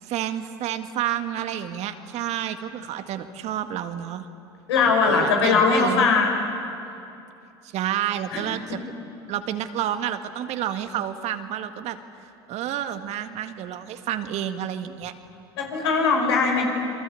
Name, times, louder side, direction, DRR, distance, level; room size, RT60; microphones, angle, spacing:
voice 1, 0.0-4.3 4.9-6.1 7.6-8.8 9.3-15.1, right 11 dB, 55° right, 8 dB, 1.9 m, -30 dB
voice 2, 4.7-6.3 8.3-8.5 15.6-16.7, left 4 dB, 80° left, 1 dB, 5.8 m, -20 dB
28.0 x 23.5 x 8.5 m, 2.7 s
hypercardioid pair, 75°, 13 cm